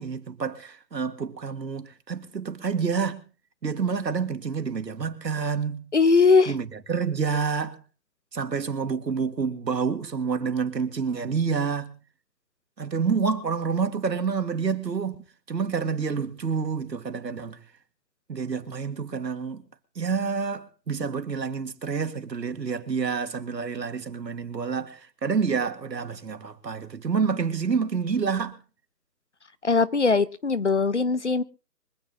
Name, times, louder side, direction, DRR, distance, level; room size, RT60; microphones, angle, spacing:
voice 1, 0.0-3.2 3.6-5.9 6.5-7.8 8.3-11.9 12.8-17.6 18.3-19.6 20.0-28.6, right 5 dB, 85° right, 2.1 m, -28 dB
voice 2, 5.9-6.5 29.6-31.4, left 4 dB, 45° left, 0.7 m, -20 dB
24.5 x 8.3 x 3.9 m
hypercardioid pair, 170°, 49 cm